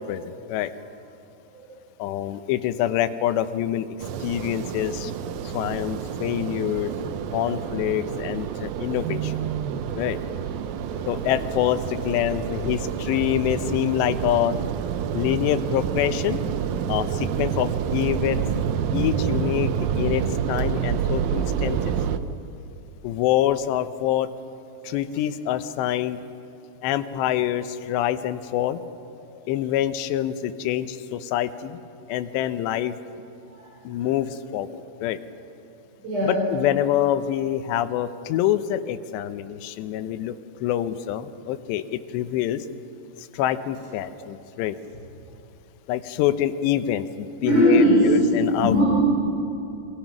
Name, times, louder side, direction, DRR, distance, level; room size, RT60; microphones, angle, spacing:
voice 1, 0.1-0.7 2.0-3.9 4.2-5.1 5.4-6.9 7.3-9.3 10.0-10.2 11.1-14.6 15.1-16.4 16.9-18.5 18.9-19.7 20.0-21.9 23.0-24.3 24.8-26.2 26.8-28.8 29.5-31.8 32.1-32.9 33.9-35.2 36.3-40.3 40.6-42.6 43.3-44.8 45.9-48.9, left 12 dB, 80° left, 11 dB, 2.9 m, -26 dB
sound 1, 4.0-22.2, right 8 dB, 75° right, 2.1 m, -28 dB
voice 2, 36.0-36.5 47.4-48.1 48.6-48.9, equal, 35° right, -6 dB, 6.2 m, -19 dB
26.5 x 24.0 x 6.0 m, 2.7 s
omnidirectional pair, 5.0 m